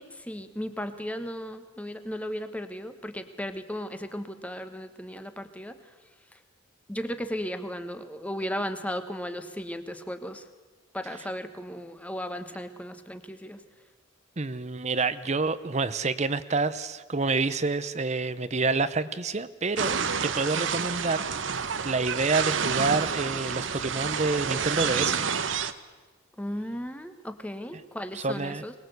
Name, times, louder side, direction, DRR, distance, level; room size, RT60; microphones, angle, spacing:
voice 1, 0.0-5.9 6.9-10.4 10.9-13.6 26.4-28.7, equal, 5° left, 9 dB, 1.3 m, -35 dB
voice 2, 14.4-20.0 20.2-25.2 28.1-28.6, right 3 dB, 35° right, 14 dB, 0.8 m, -28 dB
sound 1, 19.8-25.7, right 6 dB, 70° right, 1.0 m, -29 dB
24.0 x 20.0 x 8.0 m, 1.3 s
head